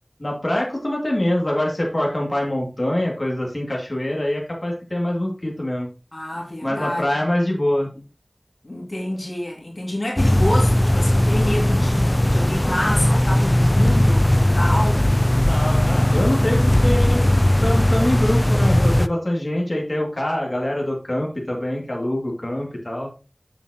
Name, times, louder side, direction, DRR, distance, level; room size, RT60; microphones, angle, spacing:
voice 1, 0.2-5.9 6.6-7.9 15.4-17.2 17.6-23.1, left 1 dB, 50° left, 2.1 m, -24 dB
voice 2, 6.1-7.1 8.6-14.3 14.5-15.1, left 1 dB, 75° left, 2.1 m, -27 dB
sound 1, 10.2-19.1, left 1 dB, 30° left, 0.3 m, -18 dB
7.4 x 7.1 x 2.8 m
wide cardioid pair, 45°, 0 cm